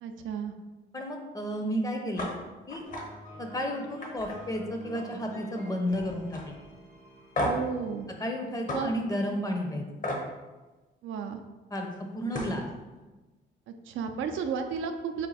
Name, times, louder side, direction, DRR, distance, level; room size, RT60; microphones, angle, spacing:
voice 1, 0.0-0.5 7.4-8.1 8.7-9.0 11.0-11.4 13.7-15.3, right 6 dB, 75° right, 5 dB, 0.4 m, -33 dB
voice 2, 0.9-2.3 2.7-2.8 3.4-6.5 8.2-9.9 11.7-11.9 12.1-12.6, equal, 15° left, 3 dB, 0.6 m, -32 dB
sound 1, 2.2-2.3 2.7-3.0 3.4-3.6 4.0-5.2 5.5-5.9 6.3-6.4 7.3-7.7 8.7-8.8 10.0-10.2 11.9-12.0 12.3-12.6, equal, 40° left, 0.9 m, -33 dB
sound 2, 2.8-8.6, equal, 85° left, 1.3 m, -49 dB
4.2 x 2.3 x 4.0 m, 1.2 s
cardioid pair, 90°, 20 cm